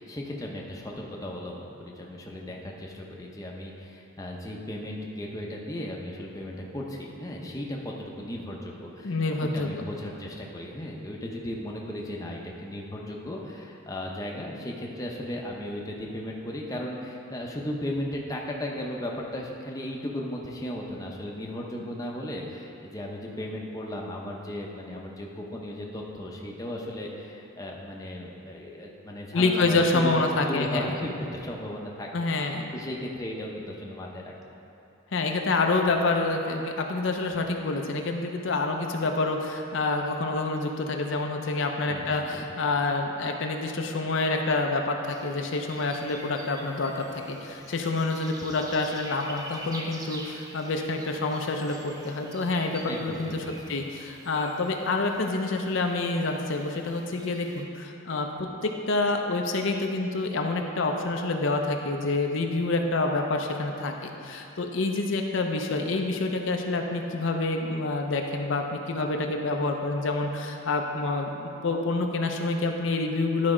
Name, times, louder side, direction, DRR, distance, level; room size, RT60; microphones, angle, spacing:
voice 1, 0.0-34.6 41.9-42.5 52.9-53.8, left 1 dB, 15° left, -2 dB, 0.7 m, -36 dB
voice 2, 9.0-9.9 29.3-30.9 32.1-32.7 35.1-58.3 58.6-73.5, left 3 dB, 65° left, 3 dB, 0.6 m, -27 dB
sound 1, 45.1-57.6, right 1 dB, 20° right, 0.6 m, -46 dB
11.5 x 4.2 x 4.9 m, 2.7 s
head